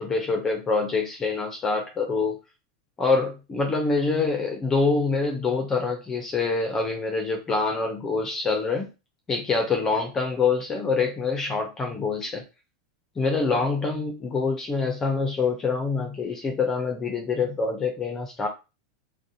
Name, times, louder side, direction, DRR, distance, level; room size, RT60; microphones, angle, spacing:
voice 1, 0.0-2.4 3.0-8.9 9.3-12.4 13.2-18.5, left 4 dB, 20° left, 2 dB, 0.5 m, -25 dB
2.4 x 2.0 x 2.7 m, 0.29 s
supercardioid pair, 130°, 2 cm